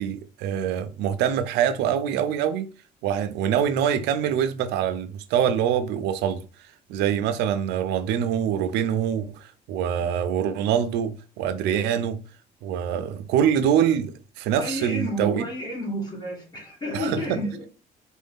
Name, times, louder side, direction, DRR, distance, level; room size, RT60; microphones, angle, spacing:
voice 1, 0.0-2.7 3.0-6.4 6.9-12.2 12.6-14.1 14.4-15.4 16.9-17.2, right 9 dB, 90° right, 0.5 m, -24 dB
voice 2, 14.6-17.7, equal, 25° left, 1.6 m, -31 dB
4.1 x 2.6 x 3.5 m
cardioid pair, 110°, 17 cm